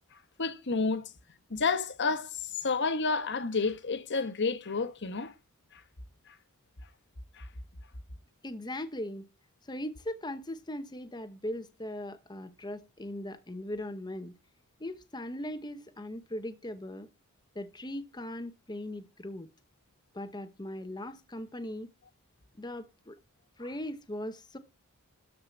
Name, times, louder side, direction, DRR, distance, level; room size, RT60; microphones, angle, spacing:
voice 1, 0.4-1.1 1.5-5.3 5.7-5.8 6.3-6.4 7.4-7.5, left 4 dB, 55° left, 1.3 m, -30 dB
voice 2, 8.4-9.3 9.6-14.4 14.8-17.1 17.5-19.5 20.1-21.9 22.6-23.2 23.6-24.6, left 1 dB, 20° left, 1.0 m, -39 dB
13.0 x 4.9 x 7.1 m
head